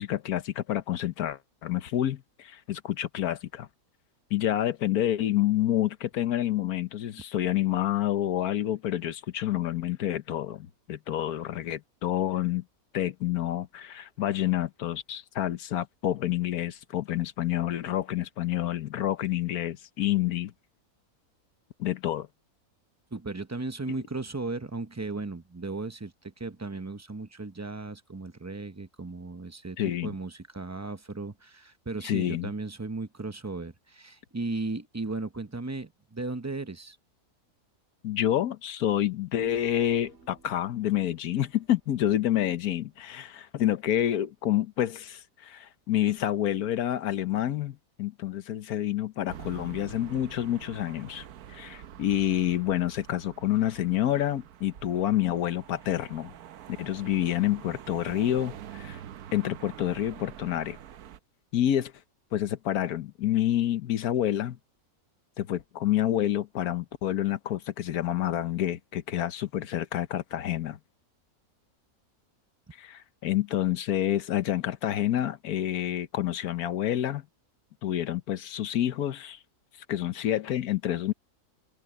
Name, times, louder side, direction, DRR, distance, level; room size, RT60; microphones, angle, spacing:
voice 1, 0.0-3.7 4.3-12.6 12.9-20.5 21.8-22.3 29.8-30.1 32.0-32.5 38.0-51.2 51.5-56.3 56.8-59.0 59.3-60.8 61.5-61.9 62.3-64.6 65.4-70.8 72.8-77.2 77.8-79.4 79.9-81.1, left 12 dB, 75° left, 1.4 m, -28 dB
voice 2, 23.1-37.0, right 3 dB, 25° right, 0.3 m, -36 dB
Human voice, 39.4-44.0 44.3-44.4, right 4 dB, 45° right, 2.4 m, -58 dB
sound 1, 49.3-61.2, right 10 dB, 75° right, 1.3 m, -46 dB
omnidirectional pair, 1.6 m